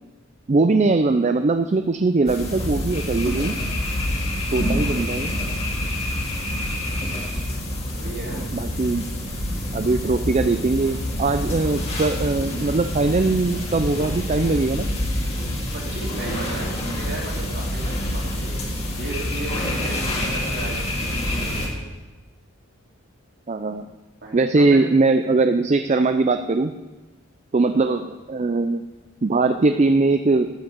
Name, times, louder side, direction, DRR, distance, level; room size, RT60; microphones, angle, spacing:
voice 1, 0.5-3.6 4.5-5.3 8.5-9.0 9.7-14.9 23.5-23.9 24.3-26.7 27.5-28.8 29.2-30.5, right 3 dB, 35° right, 8 dB, 0.4 m, -20 dB
sound 1, 2.3-21.7, left 1 dB, 30° left, 2.0 m, -27 dB
voice 2, 4.7-5.0 7.9-8.4 8.7-9.0 15.7-18.6 19.0-20.9 21.3-21.8 24.2-24.8 27.7-27.9, right 2 dB, 55° right, -3 dB, 3.3 m, -35 dB
12.5 x 8.0 x 6.7 m, 1.1 s
head